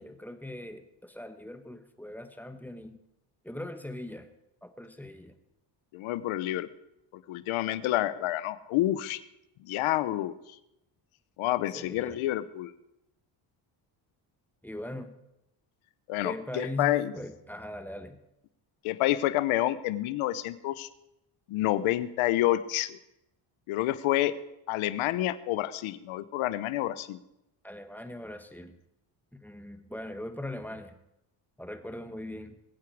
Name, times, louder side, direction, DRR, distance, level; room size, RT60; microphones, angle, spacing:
voice 1, 0.0-3.0 3.4-4.3 4.6-5.3 11.7-12.2 14.6-15.1 16.2-18.2 27.6-28.7 29.3-31.0 31.6-32.5, left 1 dB, 5° left, 8 dB, 1.3 m, -40 dB
voice 2, 5.9-6.7 7.1-9.2 9.6-10.4 11.4-12.7 16.1-17.1 18.8-20.9 21.5-23.0 23.7-24.3 24.7-27.2, left 15 dB, 90° left, 15 dB, 0.9 m, -28 dB
21.5 x 8.5 x 4.7 m, 0.86 s
cardioid pair, 85°, 47 cm